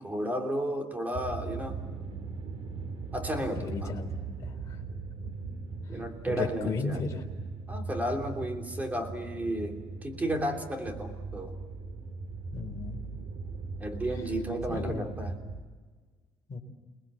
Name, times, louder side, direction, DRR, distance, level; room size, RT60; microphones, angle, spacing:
voice 1, 0.0-1.8 3.1-3.9 5.2-5.3 5.9-7.0 7.7-11.6 13.8-15.3, right 1 dB, 15° right, 4 dB, 3.2 m, -33 dB
sound 1, 1.1-15.6, right 4 dB, 60° right, 2.7 m, -39 dB
voice 2, 3.6-4.1 4.4-4.8 6.3-7.2 12.5-13.0 14.7-15.0 16.5-16.6, left 4 dB, 30° left, -1 dB, 4.0 m, -34 dB
29.0 x 20.0 x 7.6 m, 1.4 s
cardioid pair, 125°, 10 cm